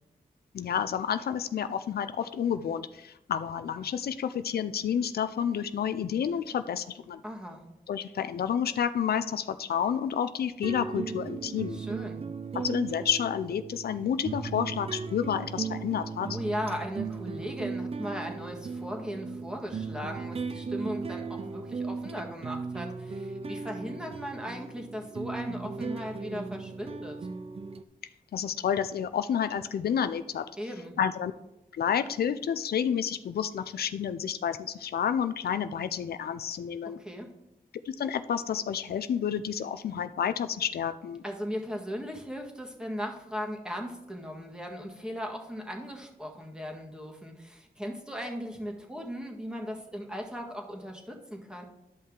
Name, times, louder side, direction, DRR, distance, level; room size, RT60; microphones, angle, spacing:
voice 1, 0.5-7.2 7.9-11.8 12.6-16.3 28.3-30.4 31.0-31.3 31.7-37.0 37.9-41.2, left 8 dB, 80° left, 11 dB, 0.4 m, -30 dB
voice 2, 7.2-7.6 11.7-12.2 16.2-27.2 30.6-31.0 37.0-37.3 41.2-51.6, equal, 5° right, 0 dB, 1.6 m, -37 dB
sound 1, 10.6-27.8, right 4 dB, 40° right, 0.5 m, -37 dB
11.0 x 5.4 x 3.7 m, 0.91 s
cardioid pair, 70°, 16 cm